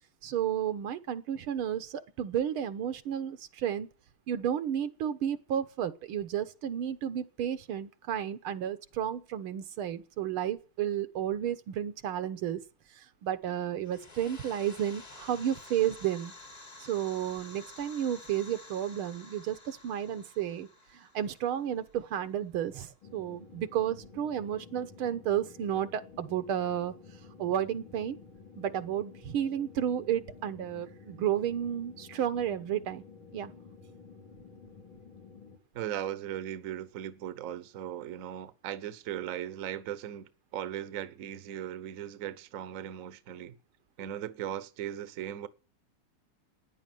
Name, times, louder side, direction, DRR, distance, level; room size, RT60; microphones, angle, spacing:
voice 1, 0.2-3.9 4.3-12.6 12.9-16.3 16.8-26.9 27.4-28.2 28.6-33.0 33.3-33.5, right 10 dB, 85° right, 1.9 m, -32 dB
sound 1, 13.8-22.4, left 2 dB, 25° left, 1.1 m, -51 dB
sound 2, 23.0-35.6, left 5 dB, 80° left, 3.3 m, -52 dB
voice 2, 35.7-43.6 44.0-45.5, right 11 dB, 55° right, 1.0 m, -38 dB
14.0 x 10.0 x 9.2 m
omnidirectional pair, 2.3 m